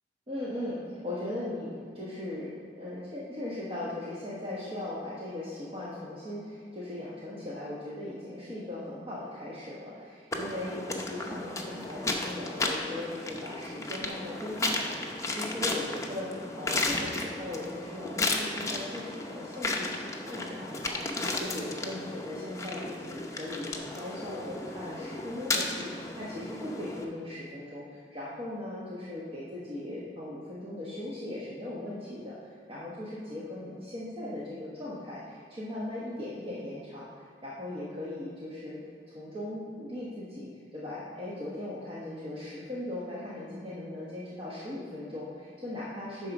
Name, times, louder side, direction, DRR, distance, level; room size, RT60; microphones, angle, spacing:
voice 1, 0.3-38.8 39.1-46.3, left 1 dB, 30° right, -8 dB, 1.1 m, -39 dB
sound 1, 10.3-27.0, left 2 dB, 20° left, 0.7 m, -34 dB
9.2 x 4.0 x 6.0 m, 2.3 s
head